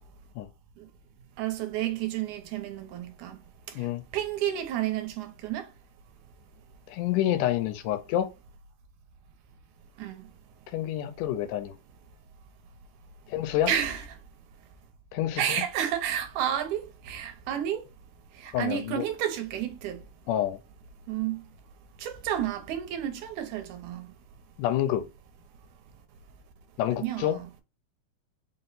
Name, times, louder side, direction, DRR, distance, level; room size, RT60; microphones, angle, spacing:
voice 1, 1.4-3.4 4.1-5.7 10.0-10.2 13.7-14.0 15.4-17.8 18.4-20.0 21.1-21.4 22.0-24.1 27.0-27.5, right 10 dB, 80° right, 2.0 m, -31 dB
voice 2, 6.9-8.3 10.7-11.7 13.3-13.7 15.1-15.6 18.5-19.1 20.3-20.6 24.6-25.0 26.8-27.4, left 12 dB, 85° left, 2.0 m, -28 dB
5.2 x 2.0 x 4.0 m
omnidirectional pair, 3.6 m